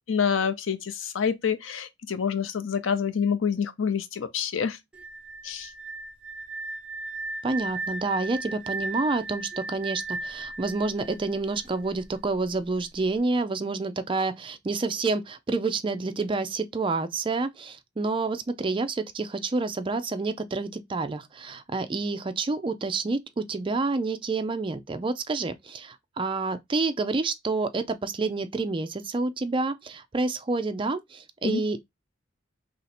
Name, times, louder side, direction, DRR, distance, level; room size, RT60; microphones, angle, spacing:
voice 1, 0.1-4.8 5.4-5.7 31.4-31.6, left 6 dB, 90° left, 0.5 m, -27 dB
sound 1, 4.9-11.8, right 3 dB, 5° right, 1.0 m, -36 dB
voice 2, 7.4-31.8, right 3 dB, 25° right, 0.4 m, -28 dB
3.2 x 2.7 x 4.1 m
head